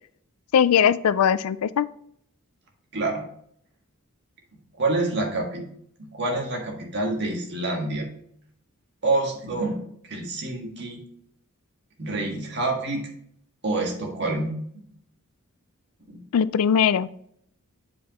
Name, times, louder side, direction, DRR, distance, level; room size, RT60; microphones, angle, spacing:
voice 1, 0.5-1.9 16.3-17.1, left 8 dB, 70° left, 17 dB, 0.3 m, -20 dB
voice 2, 2.9-3.2 4.5-5.7 6.1-8.0 9.0-11.0 12.0-13.1 13.6-14.8 16.0-16.2, right 2 dB, 50° right, 1 dB, 1.6 m, -27 dB
8.2 x 5.0 x 3.0 m, 0.67 s
head